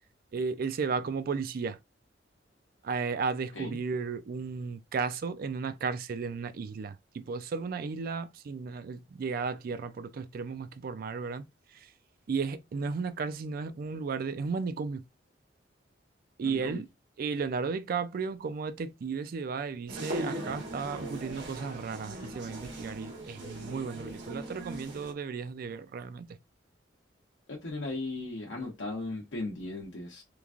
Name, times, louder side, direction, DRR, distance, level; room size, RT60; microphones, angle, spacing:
voice 1, 0.3-1.8 2.8-11.4 11.7-11.9 12.3-15.0 16.4-16.9 17.2-26.3, right 5 dB, 50° right, 0.3 m, -34 dB
voice 2, 16.4-16.8 27.5-30.2, left 2 dB, 80° left, 0.7 m, -37 dB
sound 1, 19.9-25.1, right 1 dB, 80° right, 1.3 m, -39 dB
3.1 x 2.4 x 2.4 m
head